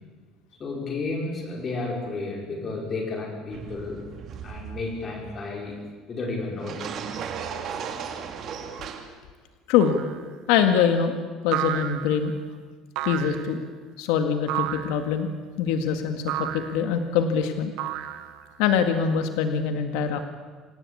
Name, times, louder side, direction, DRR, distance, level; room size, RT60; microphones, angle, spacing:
voice 1, 0.6-4.0 4.4-5.8 6.1-6.9 7.7-7.9, left 3 dB, 25° left, 0 dB, 5.6 m, -32 dB
sound 1, 3.5-5.3 6.6-9.0, right 7 dB, 40° right, 2.5 m, -36 dB
sound 2, 9.8-10.2 11.5-12.3 13.0-13.5 14.5-15.0 16.3-16.8 17.8-18.5, right 13 dB, 65° right, 1.4 m, -31 dB
voice 2, 10.5-11.2 11.4-12.3 13.0-13.6 14.0-15.3 15.6-17.7 18.6-20.2, left 7 dB, 90° left, 7 dB, 1.9 m, -23 dB
27.0 x 17.5 x 8.6 m, 1.4 s
cardioid pair, 165°, 0 cm